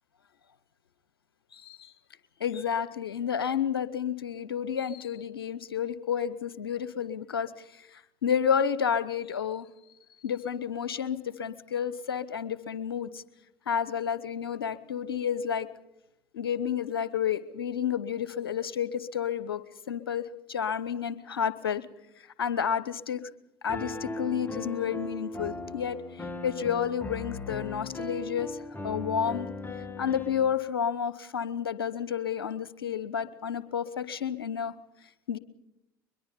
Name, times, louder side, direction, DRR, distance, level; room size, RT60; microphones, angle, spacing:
voice 1, 1.5-1.9 2.4-9.7 10.2-13.2 13.7-15.7 16.3-20.2 20.5-21.9 22.2-23.2 23.6-29.5 30.0-34.7 35.3-35.4, left 8 dB, 80° left, 16 dB, 1.0 m, -31 dB
Piano, 23.7-30.5, left 2 dB, 15° left, 2.2 m, -38 dB
22.5 x 22.0 x 5.2 m, 0.87 s
figure-of-eight pair, 65°, 12 cm